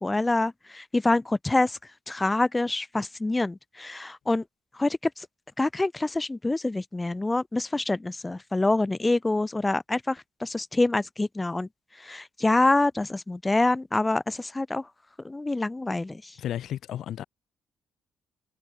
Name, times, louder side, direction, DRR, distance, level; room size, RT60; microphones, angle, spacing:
voice 1, 0.0-1.8 2.1-4.4 4.7-5.3 5.6-11.7 12.0-14.9 15.2-16.3, left 2 dB, 15° left, 1.2 m, -26 dB
voice 2, 16.4-17.2, left 11 dB, 70° left, 2.7 m, -33 dB
cardioid pair, 110°, 0 cm